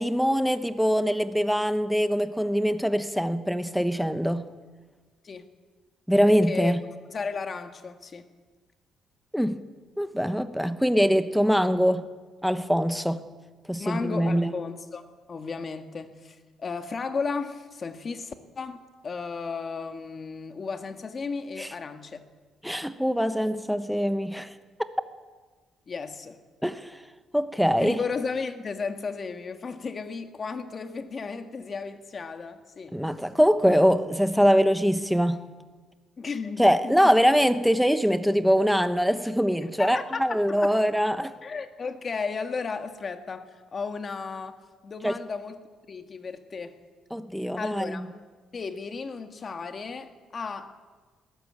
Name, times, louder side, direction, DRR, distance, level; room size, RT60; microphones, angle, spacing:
voice 1, 0.0-4.5 6.1-6.8 9.3-9.6 10.0-12.1 12.4-13.3 13.7-14.5 21.6-21.7 22.6-24.5 26.6-26.9 27.3-28.0 32.9-35.4 36.6-41.3 45.0-45.1 47.1-48.1, equal, ahead, 10 dB, 1.0 m, -23 dB
voice 2, 6.2-6.7 7.1-8.3 13.8-22.2 25.9-26.4 27.8-33.0 36.2-37.2 39.6-40.8 41.4-46.7 47.6-48.1 48.5-50.8, left 5 dB, 35° left, 7 dB, 1.8 m, -34 dB
21.5 x 18.0 x 8.8 m, 1.4 s
cardioid pair, 140°, 0 cm